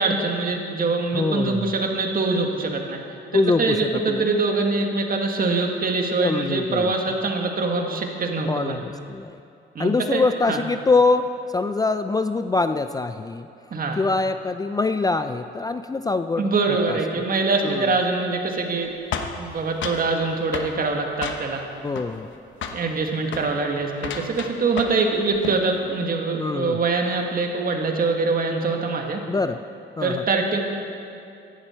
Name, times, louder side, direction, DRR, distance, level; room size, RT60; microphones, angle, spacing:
voice 1, 0.0-3.0 3.3-8.8 9.8-10.6 13.7-14.0 16.4-18.9 19.4-21.6 22.7-29.2 30.0-30.6, right 3 dB, 45° right, 2 dB, 1.8 m, -24 dB
voice 2, 1.1-1.7 3.3-4.3 6.2-6.9 8.5-9.4 9.8-13.5 14.0-16.5 16.9-17.0 17.6-18.0 21.8-22.3 26.4-26.8 29.3-29.6 30.0-30.2, left 3 dB, 20° left, 10 dB, 0.4 m, -24 dB
sound 1, 19.1-20.1 20.5-20.8 21.2-21.7 22.0-22.4 22.6-22.9 23.3-23.5 24.0-25.1 25.3-25.7, left 6 dB, 70° left, 1.0 m, -31 dB
15.5 x 11.5 x 4.4 m, 2.6 s
cardioid pair, 90°, 20 cm